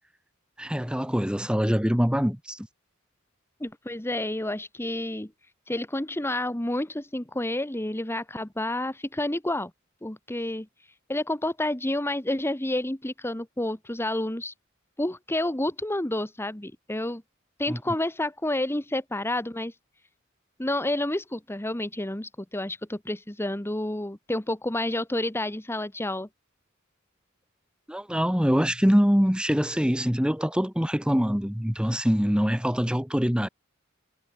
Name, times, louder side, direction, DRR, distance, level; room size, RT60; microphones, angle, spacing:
voice 1, 0.6-2.7 17.7-17.8 27.9-33.5, equal, 5° right, 1.4 m, -24 dB
voice 2, 3.6-5.3 5.7-9.7 10.0-10.7 11.1-14.5 15.0-17.2 17.6-19.7 20.6-26.3, left 1 dB, 10° left, 1.4 m, -29 dB
head